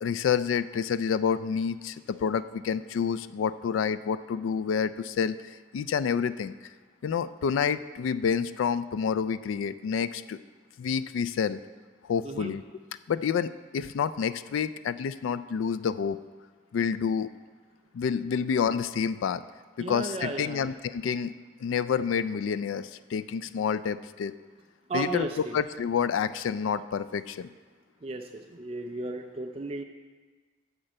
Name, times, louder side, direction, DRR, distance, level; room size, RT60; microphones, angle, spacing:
voice 1, 0.0-5.4 5.7-6.5 7.0-10.4 10.8-11.6 12.1-12.6 13.1-16.2 16.7-17.3 17.9-19.4 19.8-21.3 21.6-24.3 24.9-25.3 25.5-27.5, left 7 dB, 85° left, 13 dB, 0.3 m, -28 dB
voice 2, 19.8-20.7 24.9-25.6 28.0-29.8, right 2 dB, 30° right, 3 dB, 0.4 m, -34 dB
10.5 x 4.5 x 7.7 m, 1.4 s
head